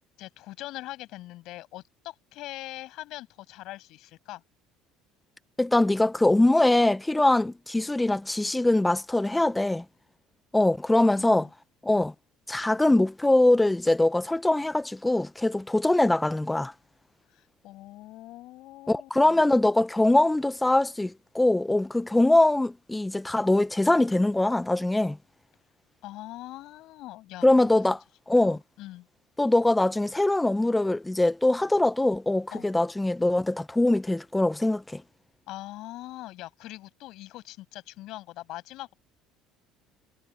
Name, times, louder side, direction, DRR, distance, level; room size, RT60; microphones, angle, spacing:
voice 1, 0.2-4.4 11.0-11.5 17.3-19.4 26.0-27.5 27.7-27.8 28.4-29.1 32.5-32.7 35.5-38.9, left 17 dB, 60° left, 6.1 m, -42 dB
voice 2, 5.6-9.8 10.5-11.5 11.8-12.1 12.5-16.7 18.9-25.2 27.4-28.0 28.3-28.6 29.4-35.0, left 2 dB, 5° left, 0.4 m, -22 dB
cardioid pair, 155°, 0 cm